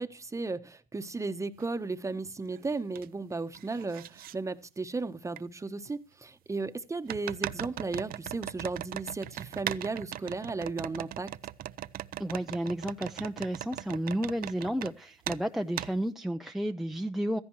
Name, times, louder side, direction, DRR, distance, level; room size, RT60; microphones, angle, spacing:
voice 1, 0.0-11.4, right 3 dB, 15° right, 1.1 m, -35 dB
sound 1, 1.6-1.7 2.2-3.1 3.3-4.3 5.4-5.5 7.1-14.9 15.2-15.4 15.8-15.9, right 12 dB, 60° right, 0.6 m, -39 dB
voice 2, 12.2-17.4, right 1 dB, ahead, 0.6 m, -32 dB
16.5 x 14.0 x 3.1 m
cardioid pair, 110°, 17 cm